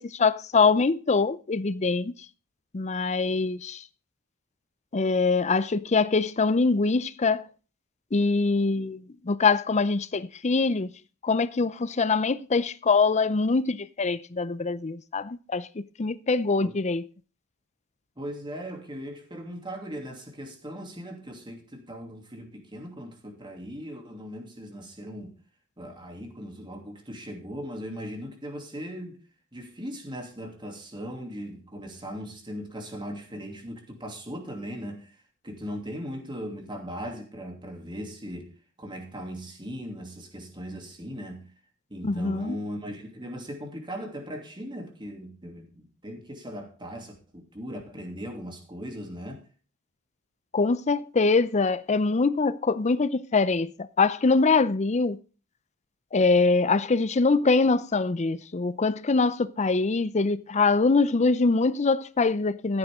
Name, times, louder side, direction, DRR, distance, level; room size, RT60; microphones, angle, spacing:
voice 1, 0.0-2.1 2.7-3.8 4.9-7.4 8.1-10.9 11.2-17.1 42.0-42.6 50.5-53.7 54.0-55.2 56.1-62.8, left 4 dB, 30° left, 0.5 m, -23 dB
voice 2, 18.2-25.4 25.8-29.2 29.5-35.2 35.4-38.5 38.8-41.5 41.9-49.4, equal, 20° right, 2.8 m, -38 dB
14.5 x 8.9 x 3.7 m
head